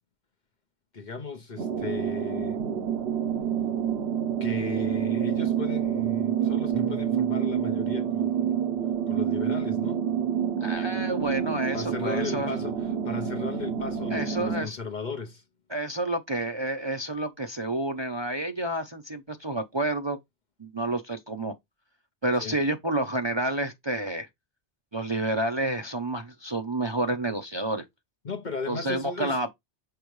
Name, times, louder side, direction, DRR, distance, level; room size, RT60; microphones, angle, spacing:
voice 1, 0.9-2.6 4.4-8.6 9.1-10.0 11.7-15.4 22.4-22.6 28.2-29.4, left 4 dB, 45° left, 0.8 m, -36 dB
sound 1, 1.6-14.6, right 9 dB, 65° right, 1.1 m, -28 dB
Bass guitar, 6.7-14.8, left 5 dB, 75° left, 1.4 m, -50 dB
voice 2, 10.6-12.5 14.1-14.8 15.7-20.2 20.6-21.5 22.2-24.3 24.9-27.9 28.7-29.5, right 1 dB, 30° right, 0.6 m, -29 dB
6.8 x 4.6 x 3.1 m
omnidirectional pair, 1.2 m